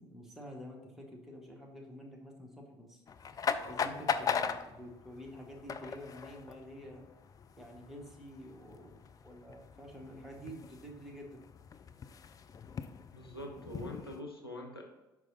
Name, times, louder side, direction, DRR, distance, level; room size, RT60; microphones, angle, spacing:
voice 1, 0.0-3.0 3.6-7.0 7.6-11.4, equal, ahead, -1 dB, 1.5 m, -49 dB
sound 1, 3.1-14.2, left 6 dB, 30° left, 0.4 m, -40 dB
voice 2, 13.1-14.8, left 1 dB, 90° left, 0 dB, 0.7 m, -44 dB
5.9 x 4.9 x 4.1 m, 1.0 s
figure-of-eight pair, 55°, 12 cm